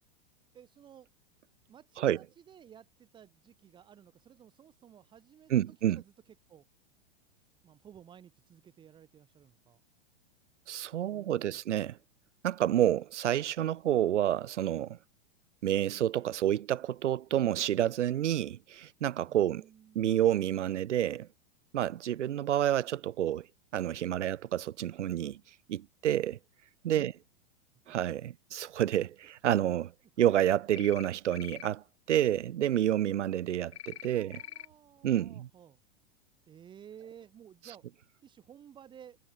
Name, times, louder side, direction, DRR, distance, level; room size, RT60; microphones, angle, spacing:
voice 1, 0.5-1.1 1.7-6.6 7.6-9.8 11.1-11.6 19.3-20.3 26.9-27.1 33.9-35.8 36.5-37.9 38.2-39.2, right 9 dB, 15° right, 3.1 m, -54 dB
voice 2, 5.5-6.0 10.7-12.0 12.4-15.0 15.6-19.6 19.9-21.3 21.7-23.5 23.7-25.4 25.7-26.4 26.8-27.1 27.9-29.9 30.2-34.4 35.0-35.5, right 11 dB, 75° right, 3.0 m, -29 dB
sound 1, 30.7-31.1 31.3-31.7 33.7-34.1 34.3-34.7, left 12 dB, 60° left, 4.5 m, -44 dB
supercardioid pair, 175°, 36 cm